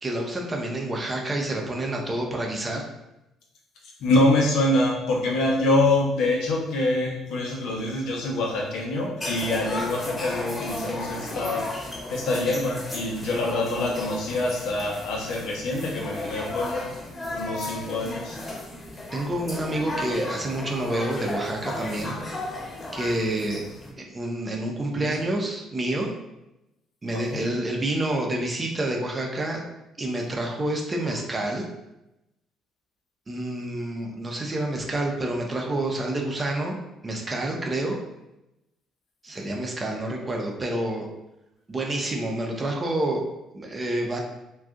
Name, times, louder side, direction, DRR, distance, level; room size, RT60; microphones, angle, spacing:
voice 1, 0.0-2.8 19.1-22.2 22.9-23.6 24.0-26.1 27.0-29.6 30.0-31.7 33.3-36.8 37.0-38.0 39.2-41.1 41.7-43.3 43.5-44.2, right 1 dB, 30° right, 0 dB, 0.6 m, -28 dB
voice 2, 4.0-11.7 12.1-16.9 17.3-18.4 24.9-25.1 27.1-27.4, left 2 dB, 65° left, -2 dB, 0.7 m, -25 dB
sound 1, 9.2-23.9, left 1 dB, 25° left, 1.0 m, -34 dB
2.5 x 2.3 x 3.7 m, 0.92 s
hypercardioid pair, 50°, 0 cm